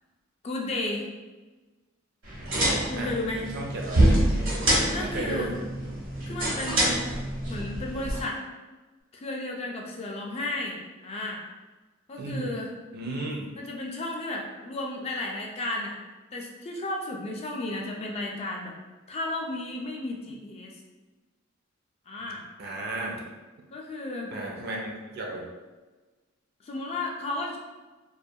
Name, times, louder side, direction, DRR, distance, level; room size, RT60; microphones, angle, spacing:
voice 1, 0.4-1.1 2.9-3.5 4.8-5.6 6.3-7.1 7.5-8.4 9.1-11.4 12.1-12.7 13.6-16.0 16.3-18.7 19.1-20.7 22.1-22.4 23.7-24.3 26.6-27.6, left 2 dB, 30° left, -1 dB, 0.3 m, -33 dB
sound 1, 2.2-8.2, right 1 dB, 70° right, 0.9 m, -26 dB
voice 2, 2.9-4.1 4.9-5.5 12.1-12.5 12.9-13.5 22.6-23.2 24.3-25.4, right 2 dB, 50° right, -1 dB, 0.4 m, -34 dB
2.3 x 2.2 x 2.6 m, 1.2 s
head